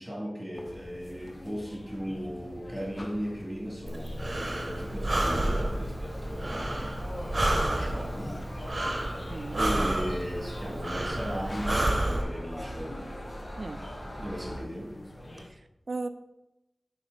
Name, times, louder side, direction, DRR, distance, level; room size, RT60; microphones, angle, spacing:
voice 1, 0.0-7.1 7.7-8.4 9.6-13.0 14.2-14.9, equal, 10° right, -3 dB, 2.2 m, -37 dB
sound 1, 0.5-15.5, left 1 dB, 35° left, 0.9 m, -45 dB
Breathing, 3.9-12.2, right 1 dB, 40° right, 1.1 m, -30 dB
sound 2, 4.7-14.6, equal, 55° left, 1.9 m, -42 dB
voice 2, 9.3-9.6 13.6-13.8 15.4-16.1, right 3 dB, 60° right, 10 dB, 0.5 m, -37 dB
9.9 x 4.3 x 4.0 m, 0.93 s
wide cardioid pair, 75°, 0 cm